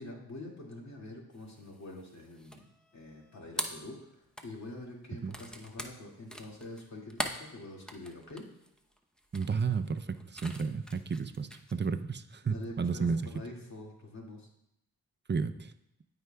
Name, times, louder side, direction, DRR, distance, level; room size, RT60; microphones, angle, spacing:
voice 1, 0.0-2.7 2.9-8.5 12.5-14.5, left 2 dB, 45° left, -2 dB, 2.2 m, -45 dB
sound 1, 1.3-11.7, equal, ahead, 0.8 m, -43 dB
voice 2, 9.3-13.2 15.3-15.7, right 5 dB, 30° right, 11 dB, 0.6 m, -32 dB
12.5 x 4.7 x 2.3 m, 0.80 s
cardioid pair, 50°, 37 cm